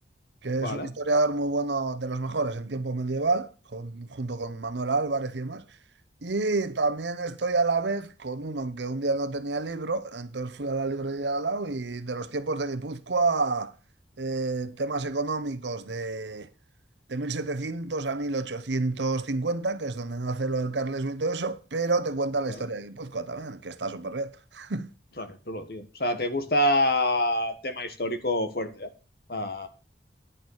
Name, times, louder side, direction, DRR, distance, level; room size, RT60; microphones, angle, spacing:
voice 1, 0.4-5.6 6.2-13.7 14.2-16.5 17.1-24.9, right 3 dB, 80° right, 0.9 m, -29 dB
voice 2, 25.2-28.9 29.3-29.7, left 1 dB, 55° left, 1.4 m, -27 dB
10.0 x 6.7 x 6.4 m
head